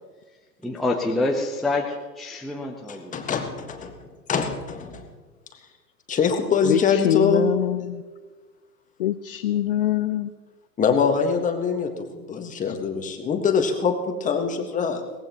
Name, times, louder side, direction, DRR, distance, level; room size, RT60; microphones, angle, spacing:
voice 1, 0.6-3.1, left 2 dB, ahead, -1 dB, 0.7 m, -26 dB
voice 2, 2.9-4.0 4.3-5.1 6.1-7.5 10.8-15.0, left 5 dB, 15° left, 4 dB, 1.6 m, -24 dB
voice 3, 7.0-8.0 9.0-10.3, left 13 dB, 40° left, 11 dB, 0.4 m, -23 dB
22.5 x 18.5 x 3.0 m, 1.3 s
hypercardioid pair, 115°, 49 cm